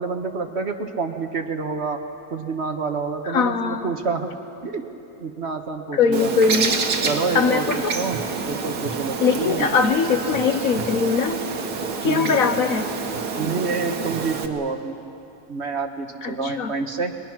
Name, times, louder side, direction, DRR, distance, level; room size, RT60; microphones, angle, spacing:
voice 1, 0.0-2.0 2.3-4.3 4.6-4.9 5.2-6.3 7.0-9.7 12.0-12.4 13.4-14.9 15.5-17.1, right 4 dB, 45° right, 6 dB, 1.3 m, -28 dB
voice 2, 3.3-3.9 5.9-6.8 7.3-7.9 9.2-11.4 12.0-12.9 16.2-16.7, left 5 dB, 60° left, 8 dB, 1.3 m, -21 dB
Bird, 6.1-14.5, right 4 dB, 70° right, 1.9 m, -28 dB
30.0 x 21.5 x 6.1 m, 2.7 s
omnidirectional pair, 1.8 m